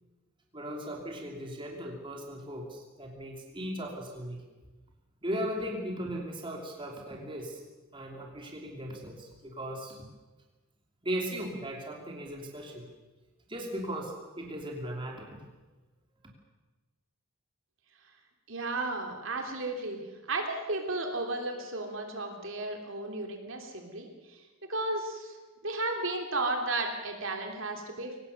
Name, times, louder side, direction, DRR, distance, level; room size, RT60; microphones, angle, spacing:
voice 1, 0.5-4.4 5.2-7.6 7.9-10.0 11.0-12.9 13.5-15.4, equal, 25° right, 0 dB, 2.9 m, -37 dB
voice 2, 18.5-20.0 20.3-24.4 24.7-25.4 25.6-28.1, right 2 dB, 60° right, 3 dB, 3.2 m, -34 dB
24.0 x 18.5 x 6.7 m, 1.2 s
head